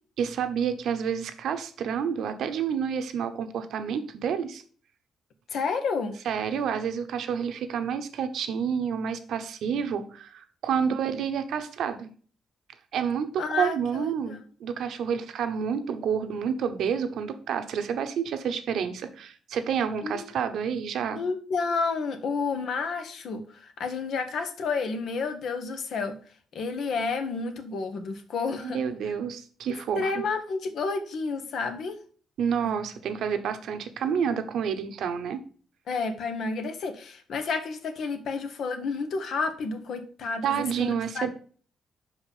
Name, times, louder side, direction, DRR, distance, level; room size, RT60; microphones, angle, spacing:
voice 1, 0.2-4.6 6.2-12.1 12.9-21.2 28.6-30.2 32.4-35.4 40.4-41.3, right 7 dB, 70° right, 9 dB, 0.9 m, -29 dB
voice 2, 5.5-6.2 10.8-10.9 13.4-14.4 20.0-20.2 21.1-26.2 26.5-28.8 30.0-32.0 35.9-41.3, left 4 dB, 65° left, 7 dB, 1.2 m, -30 dB
5.8 x 5.0 x 5.4 m, 0.43 s
cardioid pair, 90°, 0 cm